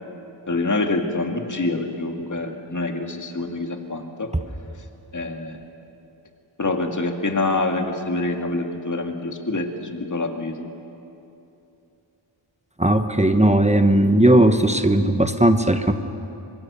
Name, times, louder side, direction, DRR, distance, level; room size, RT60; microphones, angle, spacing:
voice 1, 0.5-4.3 5.1-5.6 6.6-10.6, left 2 dB, 40° left, 4 dB, 2.1 m, -26 dB
voice 2, 12.8-15.9, right 1 dB, 15° right, 7 dB, 1.0 m, -17 dB
25.0 x 22.5 x 6.8 m, 2.8 s
wide cardioid pair, 85°, 48 cm